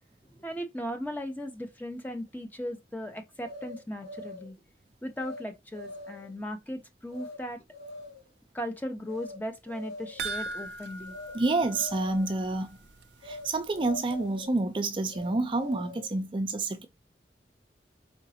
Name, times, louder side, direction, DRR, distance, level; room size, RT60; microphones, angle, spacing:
voice 1, 0.2-4.6 5.0-7.6 8.5-11.1, equal, 10° left, 0.8 m, -37 dB
sound 1, 3.4-4.5 5.2-5.4 5.7-6.3 7.1-7.4 7.7-8.3 9.1-9.4 9.7-10.3 11.1-11.4 11.7-12.3 13.2-13.5 13.7-14.5 15.1-16.1, left 2 dB, 80° left, 2.5 m, -43 dB
sound 2, 10.2-12.7 13.0-13.1 13.6-13.7, right 3 dB, 85° right, 0.5 m, -39 dB
voice 2, 11.3-12.8 13.2-16.9, right 2 dB, 30° right, 0.4 m, -28 dB
5.0 x 3.6 x 2.8 m
head